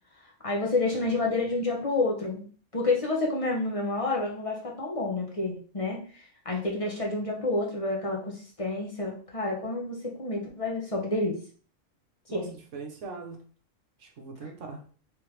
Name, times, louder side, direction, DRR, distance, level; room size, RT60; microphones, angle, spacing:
voice 1, 0.4-2.5 2.7-11.4 12.3-12.5, left 2 dB, 30° left, -1 dB, 0.8 m, -29 dB
voice 2, 12.3-13.4 14.0-14.8, right 4 dB, 65° right, 2 dB, 1.1 m, -41 dB
3.4 x 3.3 x 3.1 m, 0.41 s
omnidirectional pair, 1.4 m